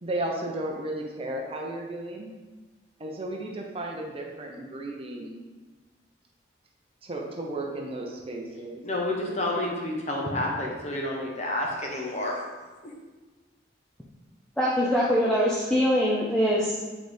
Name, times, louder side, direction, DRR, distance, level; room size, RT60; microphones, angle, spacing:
voice 1, 0.0-2.3 3.0-5.4 7.0-8.8, right 1 dB, 30° right, 0 dB, 0.7 m, -34 dB
voice 2, 8.8-12.4, left 1 dB, 35° left, -1 dB, 1.0 m, -29 dB
voice 3, 14.6-16.8, equal, 5° left, -6 dB, 0.5 m, -23 dB
8.2 x 4.0 x 3.4 m, 1.3 s
head